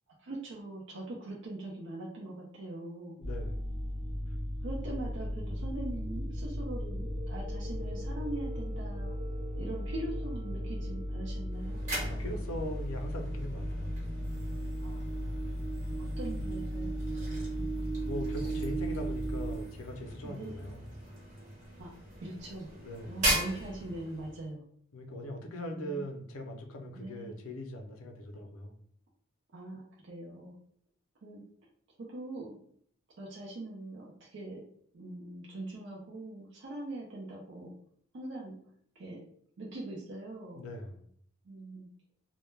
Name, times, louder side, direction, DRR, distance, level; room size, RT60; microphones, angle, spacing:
voice 1, 0.2-3.2 4.6-9.1 9.6-11.8 14.8-15.3 16.0-17.0 17.6-17.7 20.2-20.7 21.8-21.9 22.2-22.7 23.1-24.6 25.6-26.0 27.0-27.3 29.5-30.5 31.2-31.4 32.1-32.6 33.2-34.6 34.9-37.7 38.1-38.6 39.0-39.2 39.6-40.6 41.4-41.9, right 2 dB, 55° right, -3 dB, 0.5 m, -42 dB
voice 2, 3.2-3.7 12.1-14.0 17.4-17.5 18.0-20.9 22.8-23.2 24.9-28.8 40.6-41.1, equal, 75° left, 4 dB, 0.5 m, -41 dB
sound 1, 3.2-19.6, equal, 85° right, 1.0 m, -36 dB
sound 2, 11.5-24.5, right 1 dB, 35° right, 0.9 m, -39 dB
2.2 x 2.1 x 3.1 m, 0.62 s
head